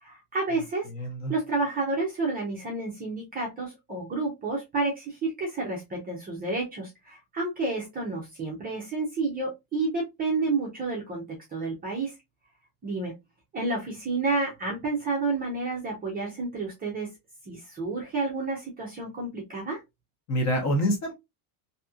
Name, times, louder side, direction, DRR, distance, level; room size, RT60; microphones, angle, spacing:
voice 1, 0.0-0.9 1.3-11.2 11.5-12.1 12.8-13.1 13.5-17.1 17.5-19.8, right 3 dB, 20° right, 0.5 m, -30 dB
voice 2, 0.9-1.3 20.3-21.1, equal, 35° left, 0.9 m, -26 dB
2.8 x 2.7 x 2.3 m
cardioid pair, 175°, 49 cm